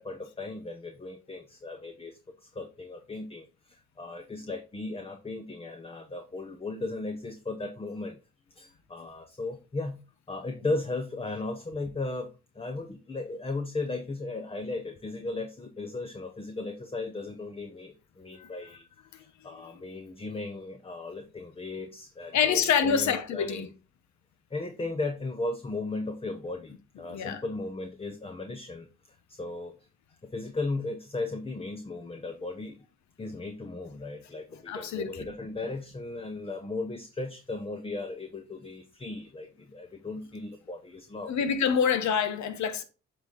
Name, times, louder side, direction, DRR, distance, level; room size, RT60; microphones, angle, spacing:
voice 1, 0.0-8.2 8.5-10.0 10.3-12.3 12.5-18.8 19.2-23.7 24.5-28.9 29.3-29.7 30.2-32.9 33.2-41.3, left 2 dB, 20° left, 0.8 m, -36 dB
voice 2, 22.3-23.7 27.1-27.4 34.7-35.2 41.3-42.8, left 7 dB, 65° left, 1.0 m, -26 dB
7.8 x 4.0 x 3.8 m
cardioid pair, 90°, 30 cm